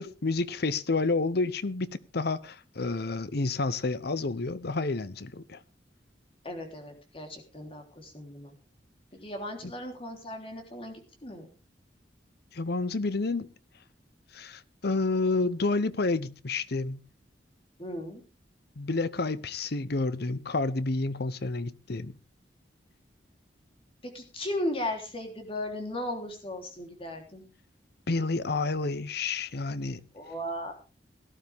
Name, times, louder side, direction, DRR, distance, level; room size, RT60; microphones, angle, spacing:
voice 1, 0.0-1.9 2.1-5.6 12.5-13.5 14.3-17.0 18.8-22.1 28.1-30.0, left 3 dB, 65° left, 0.8 m, -29 dB
voice 2, 6.4-8.5 9.1-11.5 17.8-18.2 24.0-27.4 30.1-30.7, left 1 dB, 35° left, 3.5 m, -36 dB
17.5 x 12.0 x 3.5 m
head